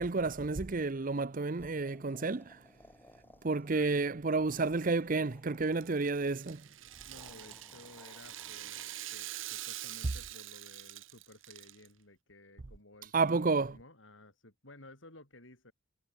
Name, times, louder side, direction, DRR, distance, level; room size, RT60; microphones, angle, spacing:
voice 1, 0.0-2.6 3.4-6.6 13.1-13.7, right 3 dB, 45° right, 0.7 m, -31 dB
sound 1, 1.6-3.9 4.2-6.3 6.9-9.2, left 1 dB, 10° left, 6.4 m, -60 dB
Rattle (instrument), 5.6-11.9, right 14 dB, 75° right, 1.1 m, -45 dB
voice 2, 7.0-15.7, left 2 dB, 70° left, 6.6 m, -56 dB
head